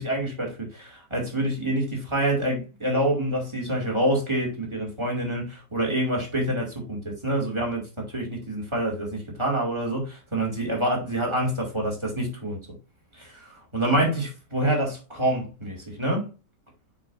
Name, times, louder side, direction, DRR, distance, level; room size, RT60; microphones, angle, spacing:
voice 1, 0.0-12.7 13.1-16.3, right 1 dB, 15° right, 2.3 m, -27 dB
7.0 x 5.7 x 2.5 m
omnidirectional pair, 1.8 m